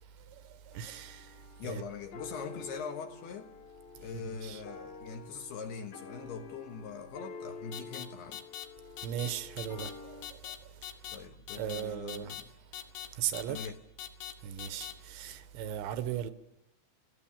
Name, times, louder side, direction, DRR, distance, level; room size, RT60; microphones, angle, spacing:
sound 1, 0.7-10.3, left 4 dB, 55° left, 4.4 m, -48 dB
voice 1, 0.7-1.2 1.6-1.9 4.1-4.6 9.0-10.2 11.6-12.3 13.2-13.6 14.4-16.3, right 10 dB, 80° right, 3.2 m, -37 dB
voice 2, 1.6-3.5 4.0-8.4 11.1-12.5 13.5-13.8, left 5 dB, 70° left, 2.9 m, -42 dB
sound 2, 7.7-8.1 8.3-8.7 9.0-9.3 9.6-9.9 10.2-10.6 10.8-11.2 11.5-11.8 12.1-12.4 12.7-13.1 13.3-13.7 14.0-14.3 14.6-14.9, left 12 dB, 90° left, 3.7 m, -41 dB
29.0 x 18.0 x 7.4 m
omnidirectional pair, 5.3 m